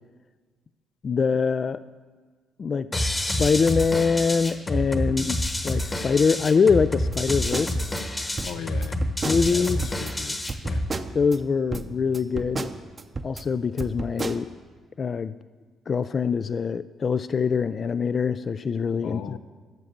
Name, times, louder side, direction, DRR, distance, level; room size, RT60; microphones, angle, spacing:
voice 1, 1.0-1.8 2.6-5.3 5.6-7.8 9.2-9.8 11.1-12.7 13.2-14.5 15.0-15.4 15.9-19.2, left 5 dB, 40° left, 14 dB, 0.3 m, -24 dB
sound 1, 2.9-10.9, left 1 dB, 20° left, 1.1 m, -28 dB
voice 2, 5.0-5.4 8.4-9.1 9.4-10.9 19.0-19.4, left 8 dB, 85° left, 11 dB, 0.7 m, -38 dB
sound 2, 7.1-8.0 8.4-10.1 10.5-11.4 11.7-13.4 13.8-14.4, right 3 dB, 30° right, 0.7 m, -33 dB
13.5 x 7.9 x 7.2 m, 1.5 s
cardioid pair, 115°, 0 cm